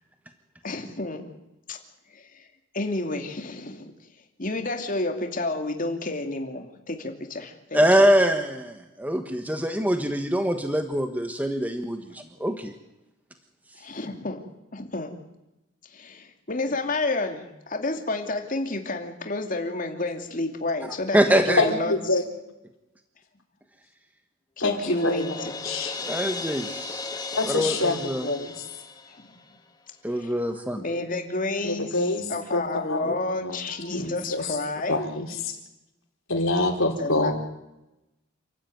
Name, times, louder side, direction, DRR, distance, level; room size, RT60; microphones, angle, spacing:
voice 1, 0.6-1.3 1.7-1.8 2.1-2.4 2.7-3.9 4.4-8.1 13.8-14.4 14.7-15.2 15.9-22.2 24.6-25.6 30.1-30.3 30.7-35.1 37.0-37.3, left 2 dB, 40° left, 4 dB, 2.7 m, -30 dB
voice 2, 7.7-12.7 21.1-21.6 26.0-27.1 27.5-28.3 30.0-30.8 33.0-33.1, equal, 10° right, 6 dB, 1.3 m, -24 dB
voice 3, 21.6-22.3 24.6-25.3 25.6-26.0 27.3-28.5 31.6-32.2 32.5-32.6 32.9-33.0 33.4-33.6 33.9-34.5 34.9-35.3 36.3-37.3, left 2 dB, 85° left, 3 dB, 4.4 m, -25 dB
Crash cymbal, 24.6-29.6, left 4 dB, 20° left, 1.8 m, -36 dB
28.5 x 13.5 x 9.4 m, 0.94 s
head